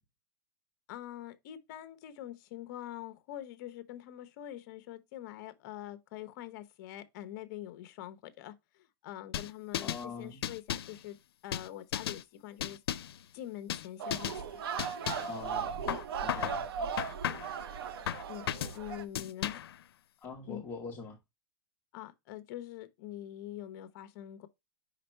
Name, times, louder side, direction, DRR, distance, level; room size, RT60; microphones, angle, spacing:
voice 1, 0.9-11.2 11.4-12.8 13.3-14.6 15.8-16.0 16.8-16.9 18.3-18.5 18.7-19.6 20.5-20.7 21.9-24.5, left 12 dB, 45° left, 0.8 m, -44 dB
sound 1, 9.3-10.0 10.4-11.0 11.5-12.2 12.6-13.2 13.7-13.9 14.1-14.4 14.8-15.3 15.9-16.6 17.0-17.6 18.1-18.8 19.1-19.8, left 11 dB, 85° left, 0.6 m, -35 dB
voice 2, 9.8-10.4 15.2-15.8 16.2-16.6 20.2-21.2, left 4 dB, 15° left, 1.0 m, -43 dB
sound 2, 14.0-19.0, right 6 dB, 75° right, 0.9 m, -37 dB
5.3 x 5.0 x 4.4 m
supercardioid pair, 155°, 13 cm